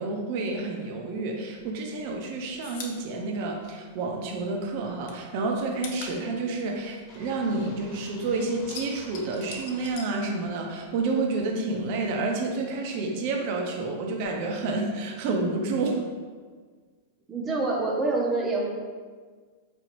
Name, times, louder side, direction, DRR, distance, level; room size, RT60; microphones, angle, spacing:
voice 1, 0.0-16.0, right 3 dB, 55° right, 1 dB, 0.6 m, -29 dB
sound 1, 1.6-4.4 4.7-8.0 8.3-10.9 11.1-12.2, left 5 dB, 60° left, 0.5 m, -44 dB
sound 2, 7.1-9.9, left 2 dB, 25° left, 1.1 m, -50 dB
voice 2, 17.3-18.7, right 3 dB, 20° right, -1 dB, 0.7 m, -26 dB
4.3 x 2.8 x 2.6 m, 1.5 s
hypercardioid pair, 110°, 0 cm